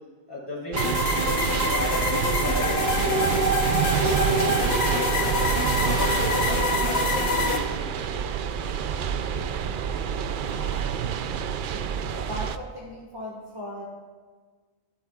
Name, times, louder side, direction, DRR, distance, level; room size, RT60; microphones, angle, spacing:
voice 1, 0.3-3.3 4.0-5.4 5.8-8.4, left 1 dB, 20° left, -4 dB, 3.8 m, -34 dB
sound 1, 0.7-12.6, right 8 dB, 60° right, 0.5 m, -27 dB
sound 2, 0.8-7.6, left 1 dB, 55° left, 1.4 m, -25 dB
voice 2, 9.4-10.1 10.5-11.2 11.7-13.9, equal, 20° right, -4 dB, 1.6 m, -39 dB
23.5 x 8.9 x 2.4 m, 1.4 s
omnidirectional pair, 1.3 m